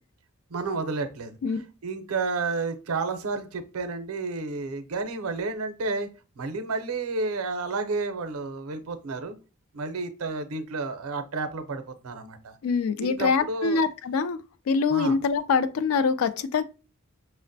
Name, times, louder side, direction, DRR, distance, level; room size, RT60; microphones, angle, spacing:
voice 1, 0.5-1.3 1.8-6.1 6.4-9.3 9.7-12.5 13.0-13.8 14.9-15.2, right 3 dB, 90° right, 0.5 m, -31 dB
voice 2, 12.6-14.4 14.7-16.6, left 5 dB, 75° left, 0.3 m, -24 dB
5.7 x 2.1 x 2.6 m
head